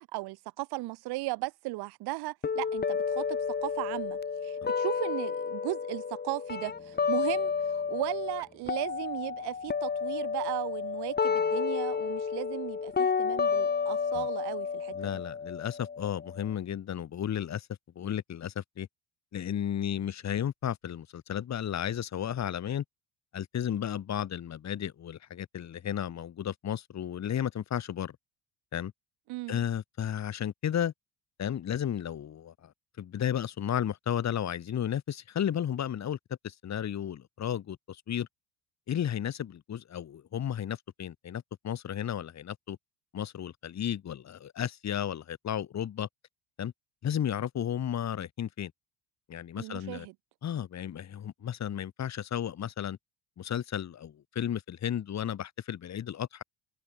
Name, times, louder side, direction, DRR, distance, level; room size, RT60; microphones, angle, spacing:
voice 1, 0.1-15.2 29.3-29.6 49.6-50.1, right 21 dB, 75° right, 2.3 m, -36 dB
sound 1, 2.4-8.4 8.7-16.5, left 6 dB, 25° left, 1.7 m, -31 dB
voice 2, 14.9-17.7 18.0-18.9 19.3-22.8 23.3-28.1 28.7-28.9 29.5-30.9 31.4-32.7 33.0-36.2 36.4-38.3 38.9-42.8 43.1-46.1 46.6-46.7 47.0-48.7 49.3-50.1 50.4-53.0 53.4-56.4, left 9 dB, 45° left, 2.5 m, -33 dB
supercardioid pair, 95°, 39 cm